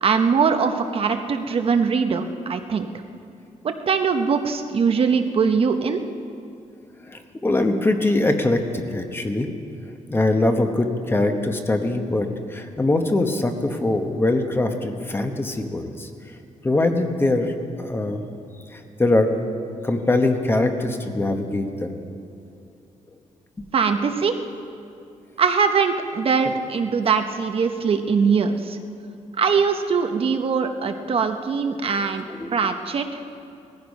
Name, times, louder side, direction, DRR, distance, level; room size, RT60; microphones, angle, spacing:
voice 1, 0.0-2.9 3.6-6.0 23.7-24.3 25.4-28.8 29.4-32.3 32.5-33.1, right 5 dB, 45° right, 7 dB, 0.8 m, -21 dB
voice 2, 7.1-9.5 10.1-16.1 16.6-18.2 18.7-19.3 19.8-22.1 26.4-26.6 31.9-32.6, left 2 dB, 15° left, 5 dB, 1.0 m, -23 dB
18.5 x 14.5 x 5.3 m, 2.5 s
wide cardioid pair, 165°, 13 cm